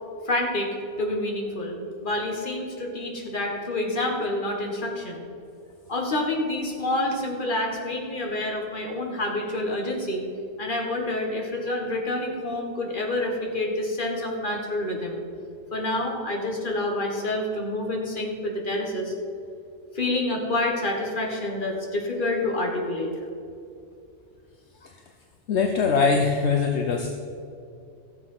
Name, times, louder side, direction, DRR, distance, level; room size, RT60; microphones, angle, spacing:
voice 1, 0.2-5.2 5.9-10.2 10.6-15.2 15.7-19.1 19.9-23.1, left 1 dB, 45° left, 1 dB, 1.8 m, -28 dB
voice 2, 25.5-27.1, left 5 dB, 65° left, 3 dB, 1.1 m, -22 dB
14.5 x 7.5 x 5.6 m, 2.5 s
omnidirectional pair, 1.2 m